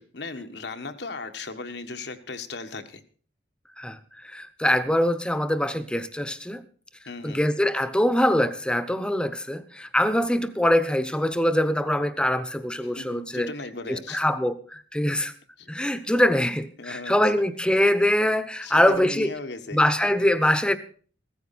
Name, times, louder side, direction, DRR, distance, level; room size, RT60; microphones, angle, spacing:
voice 1, 0.0-3.0 7.0-7.4 12.8-14.2 15.6-15.7 16.8-17.2 18.6-19.8, left 3 dB, 70° left, 8 dB, 1.5 m, -37 dB
voice 2, 3.8-6.6 7.2-13.5 13.9-15.3 15.7-19.3 19.7-20.8, left 1 dB, 5° left, 12 dB, 1.0 m, -23 dB
16.0 x 14.0 x 4.3 m, 0.43 s
head